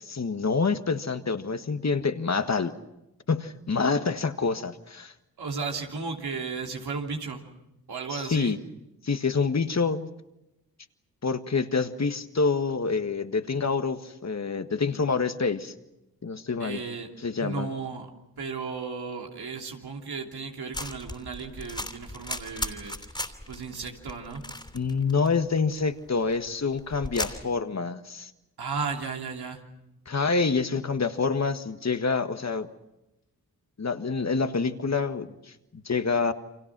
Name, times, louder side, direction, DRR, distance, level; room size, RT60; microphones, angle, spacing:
voice 1, 0.0-2.8 3.3-5.1 8.1-8.6 9.0-10.1 11.2-15.7 16.2-16.8 17.2-17.7 24.7-28.3 30.1-32.7 33.8-36.3, left 4 dB, 45° left, 9 dB, 1.6 m, -27 dB
voice 2, 5.4-7.4 7.9-8.5 16.6-17.1 17.4-18.1 18.4-22.9 23.5-24.4 28.6-29.6, right 5 dB, 90° right, 1 dB, 3.1 m, -34 dB
sound 1, 20.7-27.4, left 1 dB, 10° left, 3.1 m, -37 dB
29.5 x 25.0 x 6.1 m, 0.90 s
cardioid pair, 55°, 37 cm